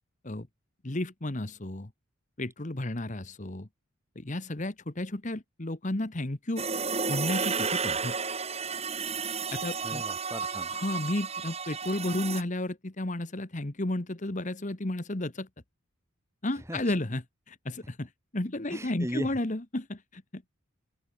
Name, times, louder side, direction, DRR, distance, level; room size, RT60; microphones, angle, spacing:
voice 1, 0.8-1.9 2.4-3.7 4.1-6.7 7.1-8.2 9.5-10.0 10.7-15.5 16.4-20.5, left 1 dB, 35° left, 1.3 m, -33 dB
sound 1, 6.6-12.4, right 5 dB, 30° right, 3.2 m, -32 dB
voice 2, 9.8-10.7 16.7-16.8 18.7-19.3, equal, 15° right, 3.7 m, -36 dB
open air
head